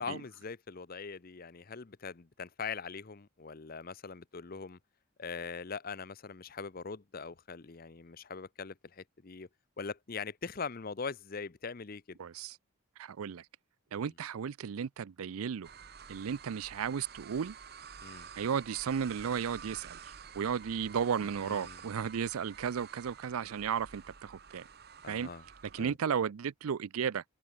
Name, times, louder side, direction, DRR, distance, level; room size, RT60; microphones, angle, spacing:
voice 1, 0.0-4.8 5.2-9.5 9.8-12.2 13.9-14.0 18.0-18.3 21.4-21.8 25.0-25.4 25.8-25.9, left 5 dB, 40° left, 0.6 m, -42 dB
voice 2, 12.2-12.6 13.0-13.5 13.9-15.7 16.1-17.6 18.4-24.7 25.1-25.3 25.7-27.2, right 7 dB, 75° right, 0.4 m, -34 dB
sound 1, 15.6-25.8, right 7 dB, 45° right, 1.1 m, -50 dB
head